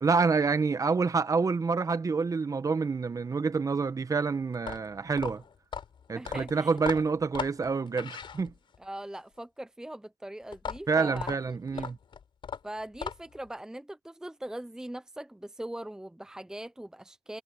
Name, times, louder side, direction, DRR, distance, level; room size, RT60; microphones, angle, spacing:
voice 1, 0.0-5.4 6.1-8.5 10.9-12.0, right 4 dB, 30° right, 1.3 m, -27 dB
sound 1, 4.5-8.8 10.5-13.5, left 7 dB, 50° left, 3.8 m, -38 dB
voice 2, 6.1-6.7 8.8-11.9 12.6-17.4, right 1 dB, 5° right, 0.8 m, -41 dB
cardioid pair, 80°, 11 cm